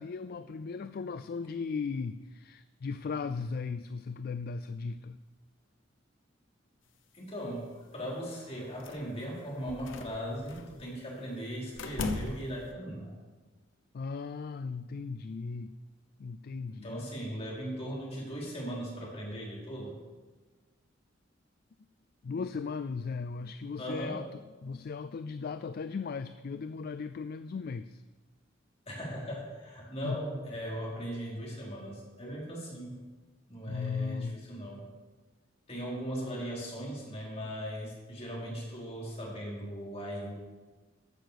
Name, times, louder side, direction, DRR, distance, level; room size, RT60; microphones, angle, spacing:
voice 1, 0.0-5.2 13.9-15.7 16.2-17.0 22.2-24.3 24.6-28.0 30.0-30.2 33.7-34.4, left 5 dB, 50° left, 12 dB, 0.4 m, -37 dB
voice 2, 7.1-13.2 16.7-20.0 23.8-24.2 28.9-33.0 33.5-34.8 35.7-40.3, equal, 35° left, -4 dB, 4.0 m, -38 dB
sound 1, 8.8-9.2 9.7-10.8 11.7-12.7, left 3 dB, 85° left, 1.0 m, -37 dB
14.0 x 6.6 x 6.7 m, 1.3 s
head